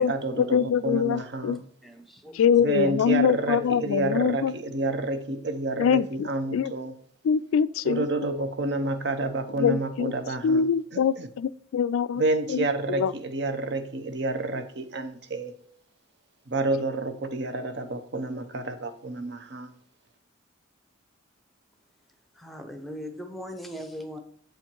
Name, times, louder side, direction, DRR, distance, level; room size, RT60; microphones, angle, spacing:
voice 1, 0.0-1.6 2.6-6.9 7.8-11.3 12.1-15.5 16.5-19.7, right 2 dB, 55° right, 0.7 m, -29 dB
voice 2, 0.5-1.6 2.4-4.5 5.8-6.7 7.2-8.1 9.6-10.1 10.4-12.2 12.5-12.6 13.0-13.1, left 7 dB, 85° left, 0.3 m, -24 dB
voice 3, 1.5-2.5 22.3-24.2, equal, ahead, 0.7 m, -40 dB
7.8 x 4.4 x 4.5 m
head